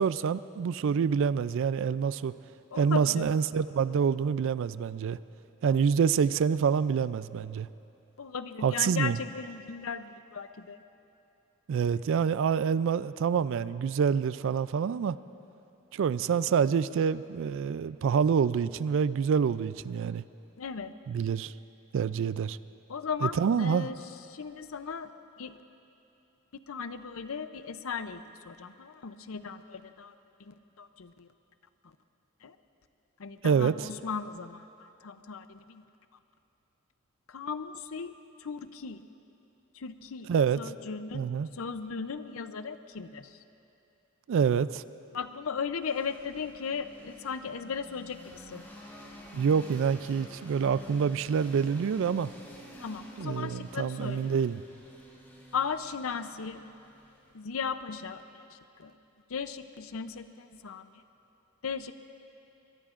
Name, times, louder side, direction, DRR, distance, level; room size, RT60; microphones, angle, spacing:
voice 1, 0.0-2.3 2.8-5.2 5.6-7.7 8.6-9.2 11.7-15.2 15.9-20.2 21.1-21.5 21.9-22.6 23.2-23.9 33.4-33.9 40.3-40.6 41.1-41.5 44.3-44.8 49.3-52.3 53.2-54.6, right 6 dB, 65° right, 16 dB, 0.3 m, -27 dB
voice 2, 2.7-3.3 5.7-5.8 8.2-10.8 20.6-20.9 22.9-24.0 24.3-25.1 25.4-25.6 26.7-30.1 30.4-31.3 31.8-31.9 32.4-32.6 33.2-35.8 37.3-38.1 38.4-39.0 39.7-40.3 40.6-41.3 41.5-43.4 45.1-48.7 52.8-54.4 55.5-56.6 57.3-58.9 59.3-61.0 61.6-61.9, left 5 dB, 70° left, 11 dB, 0.6 m, -37 dB
sound 1, 45.8-57.6, equal, 10° left, 2.2 m, -51 dB
22.0 x 21.5 x 2.5 m, 2.8 s
head